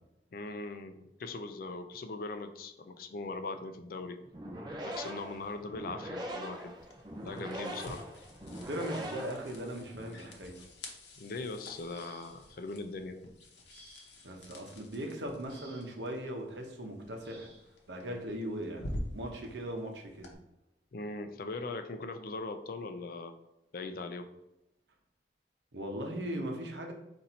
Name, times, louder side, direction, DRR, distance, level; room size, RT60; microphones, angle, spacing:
voice 1, 0.3-4.2 4.8-6.7 7.2-8.0 11.2-13.2 20.9-23.3 23.7-24.3, left 3 dB, 55° left, 8 dB, 0.4 m, -40 dB
sound 1, 4.3-10.0, right 1 dB, 25° right, 0.5 m, -42 dB
sound 2, 6.8-20.3, left 1 dB, 85° left, 0.8 m, -48 dB
voice 2, 8.7-10.7 14.2-17.5 17.9-20.3 25.7-26.9, equal, 85° right, 2 dB, 0.8 m, -39 dB
sound 3, 11.7-12.6 13.7-14.4 15.5-16.1 17.2-17.7 18.9-19.1 19.6-19.8, right 1 dB, 65° right, 1.1 m, -58 dB
4.1 x 2.6 x 4.2 m, 0.89 s
head